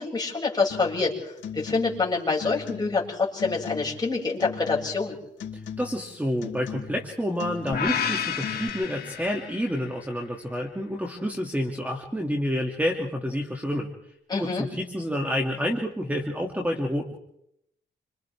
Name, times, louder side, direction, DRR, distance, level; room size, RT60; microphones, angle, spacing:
voice 1, 0.0-5.2 14.3-14.7, left 4 dB, 20° left, -3 dB, 6.8 m, -26 dB
sound 1, 0.7-1.0 1.4-2.1 2.4-3.1 3.4-4.1 4.4-5.1 5.4-6.1 6.4-7.1 7.4-8.1 8.4-8.7, left 7 dB, 80° left, 4.1 m, -38 dB
voice 2, 5.8-13.9 14.4-17.2, equal, 10° right, 1 dB, 2.7 m, -29 dB
sound 2, 7.7-9.9, left 7 dB, 55° left, 2.7 m, -30 dB
28.5 x 26.5 x 3.7 m, 0.75 s
cardioid pair, 95°, 19 cm